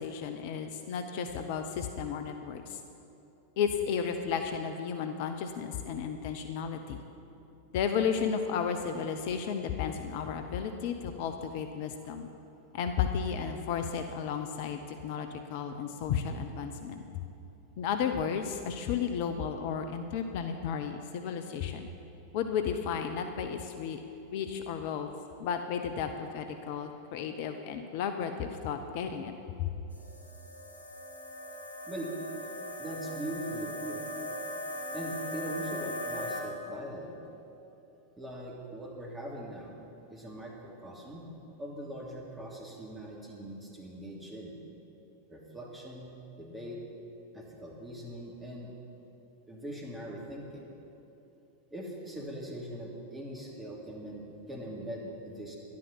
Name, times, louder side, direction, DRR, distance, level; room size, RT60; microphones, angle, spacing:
voice 1, 0.0-2.8 3.6-7.0 7.7-12.3 12.7-17.0 17.8-21.9 22.3-24.0 24.3-25.1 25.4-29.7, left 7 dB, 50° left, 6 dB, 0.7 m, -33 dB
sound 1, 29.9-36.4, left 1 dB, 80° right, 2.7 m, -39 dB
voice 2, 32.8-34.0 34.9-37.2 38.2-39.7 40.1-41.3 41.6-44.5 45.3-46.1 46.4-46.8 47.3-48.7 49.5-50.7 51.7-55.6, right 1 dB, 10° right, -3 dB, 2.9 m, -41 dB
11.5 x 11.0 x 7.4 m, 2.9 s
figure-of-eight pair, 90°, 0 cm